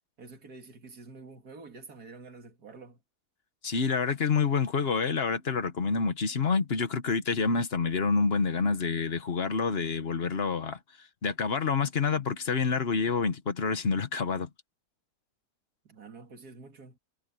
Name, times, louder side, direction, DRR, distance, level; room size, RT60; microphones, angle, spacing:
voice 1, 0.2-3.0 15.8-17.0, right 4 dB, 90° right, 2.8 m, -48 dB
voice 2, 3.6-10.8 11.2-14.5, left 5 dB, 45° left, 1.4 m, -28 dB
omnidirectional pair, 1.6 m